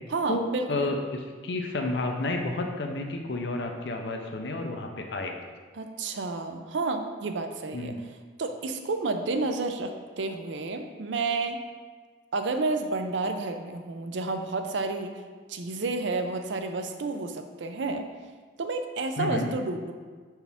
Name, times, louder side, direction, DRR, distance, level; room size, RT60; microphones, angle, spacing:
voice 1, 0.1-0.9 5.7-7.9 8.4-11.6 12.3-15.1 15.5-18.1 18.6-19.9, right 3 dB, 80° right, 6 dB, 0.5 m, -30 dB
voice 2, 0.7-5.3 7.7-8.0 19.2-19.5, left 2 dB, 70° left, 3 dB, 0.6 m, -31 dB
6.9 x 4.5 x 3.5 m, 1.5 s
head